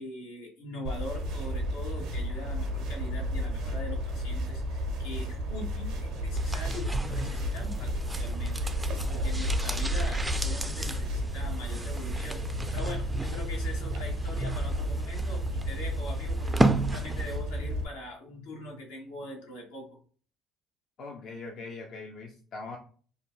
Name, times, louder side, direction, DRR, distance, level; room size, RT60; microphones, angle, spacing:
voice 1, 0.0-20.0, left 1 dB, 80° left, -1 dB, 1.0 m, -42 dB
sound 1, 0.8-17.8, equal, 70° right, 0.7 m, -32 dB
sound 2, 6.3-17.5 17.8-17.9, right 2 dB, 15° right, 0.4 m, -34 dB
voice 2, 21.0-22.8, left 3 dB, 55° left, 2 dB, 0.5 m, -41 dB
2.7 x 2.2 x 3.5 m, 0.43 s
hypercardioid pair, 60°, 0 cm